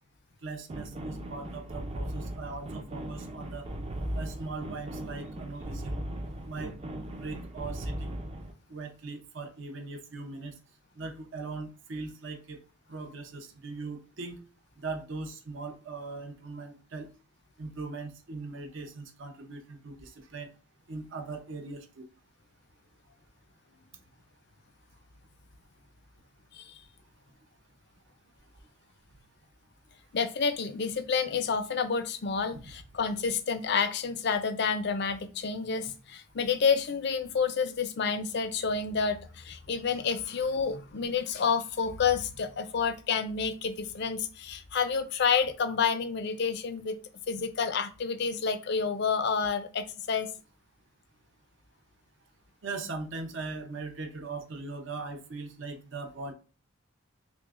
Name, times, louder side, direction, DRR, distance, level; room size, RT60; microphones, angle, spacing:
voice 1, 0.4-3.7 4.2-6.0 6.4-6.7 7.1-8.2 8.7-10.5 11.0-12.6 12.9-14.4 14.8-17.1 17.6-20.5 20.9-22.1 32.5-32.6 52.6-56.3, right 3 dB, 65° right, 5 dB, 0.7 m, -40 dB
sound 1, 0.7-8.5, right 1 dB, 30° right, 0.4 m, -38 dB
voice 2, 30.1-47.0 47.3-50.3, left 5 dB, 55° left, 10 dB, 0.5 m, -29 dB
5.9 x 2.1 x 2.5 m, 0.35 s
head